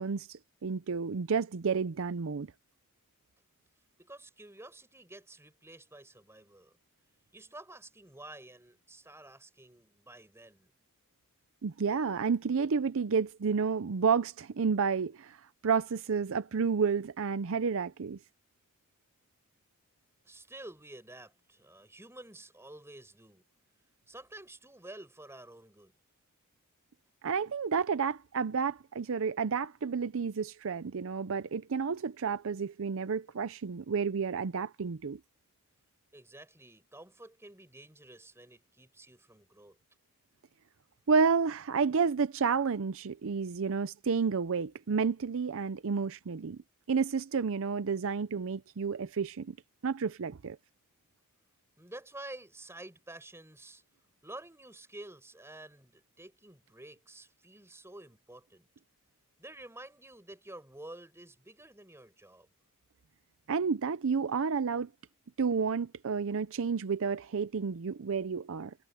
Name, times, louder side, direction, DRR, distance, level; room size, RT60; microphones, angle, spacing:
voice 1, 0.0-2.5 11.6-18.2 27.2-35.2 41.1-46.6 46.9-49.6 49.8-50.6 63.5-64.9 65.4-68.7, right 5 dB, 65° right, 0.5 m, -30 dB
voice 2, 4.0-6.8 7.3-10.7 20.2-23.4 24.1-26.0 36.1-39.8 51.8-53.8 54.2-58.7 59.4-62.5, right 1 dB, 10° right, 6.1 m, -50 dB
head